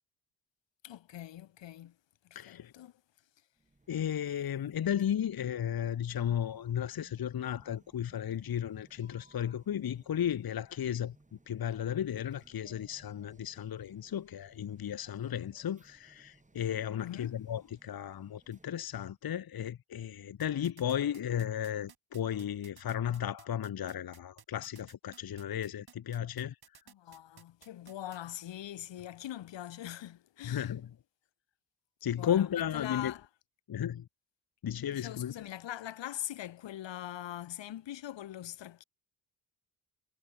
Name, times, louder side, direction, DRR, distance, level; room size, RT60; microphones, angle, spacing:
voice 1, 0.8-2.0 2.5-2.9 17.0-17.4 26.9-30.7 32.2-33.2 34.9-38.8, left 12 dB, 65° left, 1.8 m, -42 dB
voice 2, 2.3-2.7 3.9-26.8 30.4-30.9 32.0-33.1 33.7-34.1 34.6-35.3, left 10 dB, 50° left, 1.3 m, -34 dB
sound 1, 3.6-19.2, right 2 dB, 15° right, 3.9 m, -64 dB
sound 2, 20.4-28.2, right 7 dB, 50° right, 5.0 m, -56 dB
supercardioid pair, 60°, 47 cm